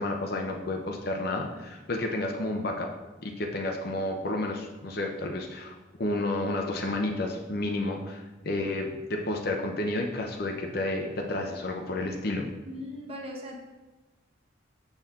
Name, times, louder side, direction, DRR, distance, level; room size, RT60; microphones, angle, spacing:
voice 1, 0.0-2.9 3.2-12.5, left 2 dB, 55° left, 2 dB, 0.8 m, -31 dB
voice 2, 12.6-13.6, left 1 dB, 30° right, -1 dB, 1.3 m, -39 dB
7.3 x 6.6 x 3.7 m, 1.1 s
head